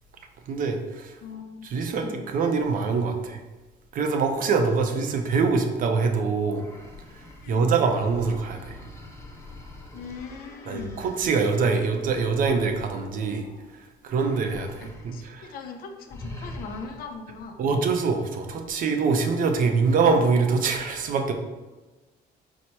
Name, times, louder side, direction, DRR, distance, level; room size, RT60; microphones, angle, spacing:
voice 1, 0.5-1.1 1.6-3.4 3.9-6.6 7.5-8.8 10.7-13.5 14.0-15.5 17.6-21.3, right 4 dB, 55° right, 5 dB, 0.5 m, -24 dB
voice 2, 1.2-2.2 7.4-7.7 9.9-11.0 14.8-17.6, left 5 dB, 60° left, 4 dB, 0.5 m, -40 dB
sound 1, 6.5-13.6 14.1-15.3 15.6-15.7 16.1-17.2, left 1 dB, 15° left, 0.7 m, -44 dB
4.3 x 2.1 x 4.4 m, 1.2 s
cardioid pair, 110°, 17 cm